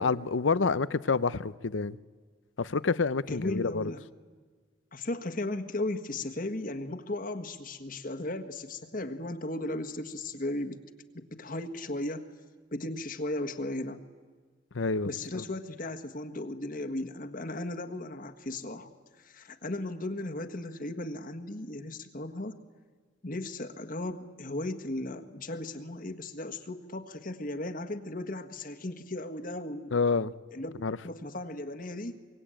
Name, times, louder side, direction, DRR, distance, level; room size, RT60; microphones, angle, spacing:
voice 1, 0.0-2.0 2.6-3.9 14.7-15.4 29.9-30.3 30.8-31.0, left 4 dB, 80° left, 0.7 m, -28 dB
voice 2, 3.3-4.0 4.9-10.8 11.1-12.3 12.7-14.0 15.0-18.9 19.2-22.6 23.2-29.9 30.5-32.1, left 1 dB, 45° left, 1.6 m, -36 dB
24.5 x 23.5 x 9.0 m
head